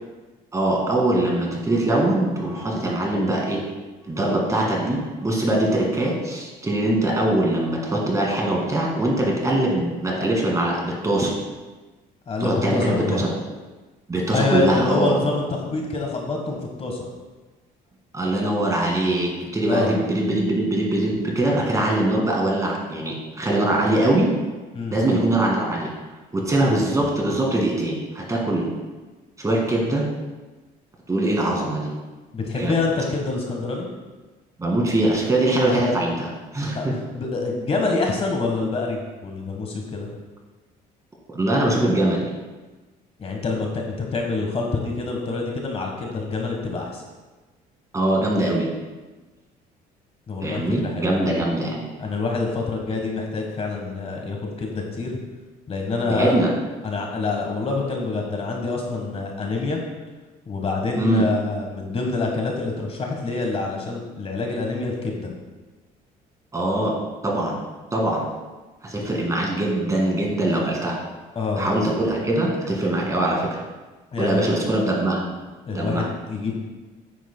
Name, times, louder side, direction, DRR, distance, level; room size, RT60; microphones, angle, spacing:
voice 1, 0.5-3.6 4.1-11.3 12.4-13.3 14.1-15.2 18.1-24.4 24.9-25.9 26.3-28.7 29.4-30.1 31.1-31.9 32.5-32.7 34.6-36.9 41.3-42.3 47.9-48.7 50.4-51.9 56.1-56.5 61.0-61.3 66.5-67.0 67.2-67.6 67.9-68.3 68.8-71.0 71.6-73.6 74.2-75.3 75.7-76.1, right 1 dB, 20° right, -1 dB, 2.0 m, -22 dB
voice 2, 12.3-13.2 14.3-17.1 19.7-19.9 24.7-25.0 32.3-33.9 36.7-36.9 37.1-40.1 43.2-47.0 50.3-51.3 52.0-55.2 55.7-56.4 56.8-59.8 60.5-65.3 71.3-71.7 74.1-74.5 75.7-76.6, left 3 dB, 35° left, 1 dB, 1.3 m, -26 dB
9.3 x 8.3 x 2.2 m, 1.2 s
cardioid pair, 110°, 17 cm